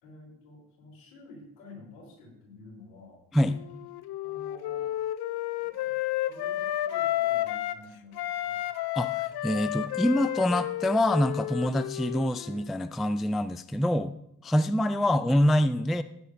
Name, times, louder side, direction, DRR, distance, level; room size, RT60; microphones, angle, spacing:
voice 1, 0.0-3.2 4.2-4.9 5.6-8.6, left 2 dB, 75° left, -1 dB, 3.7 m, -51 dB
Wind instrument woodwind instrument, 3.4-7.8 8.1-12.7, left 14 dB, 55° left, 0.7 m, -32 dB
voice 2, 9.0-14.1 14.4-16.0, left 1 dB, ahead, 14 dB, 0.3 m, -25 dB
15.5 x 9.7 x 2.6 m, 0.76 s
figure-of-eight pair, 40°, 45 cm